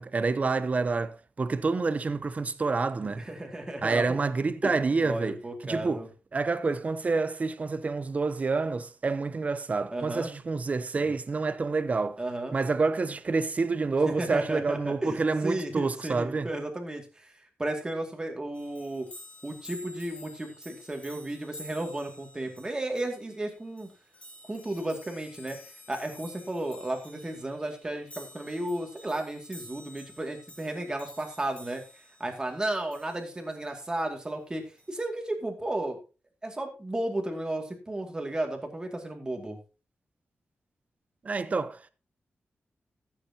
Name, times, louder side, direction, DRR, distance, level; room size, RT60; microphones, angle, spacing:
voice 1, 0.0-3.2 3.8-5.4 5.6-6.0 6.3-12.2 12.5-16.5 41.2-41.9, right 4 dB, 35° right, 0.7 m, -28 dB
voice 2, 3.0-4.3 4.6-6.1 9.9-10.3 12.2-12.6 14.0-17.3 17.6-19.1 19.4-23.9 24.5-25.6 25.9-31.8 32.2-34.6 34.9-36.0 36.4-39.6, right 1 dB, 20° right, 2.3 m, -33 dB
sound 1, 18.5-33.6 34.8-35.0, left 1 dB, 30° left, 3.9 m, -50 dB
14.5 x 8.2 x 2.9 m
wide cardioid pair, 150°, 4 cm